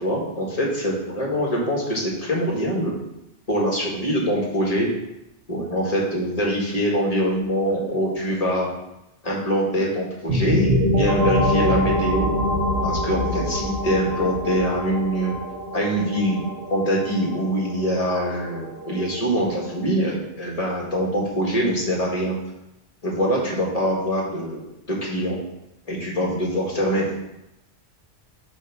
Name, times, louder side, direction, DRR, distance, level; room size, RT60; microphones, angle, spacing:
voice 1, 0.0-3.0 3.5-4.9 5.5-8.7 9.2-12.3 12.8-15.4 15.7-22.4 23.0-25.4 25.9-27.1, equal, 30° left, -3 dB, 1.9 m, -24 dB
sound 1, 10.3-19.9, left 1 dB, 55° right, 1.8 m, -25 dB
7.2 x 3.6 x 6.1 m, 0.88 s
omnidirectional pair, 1.2 m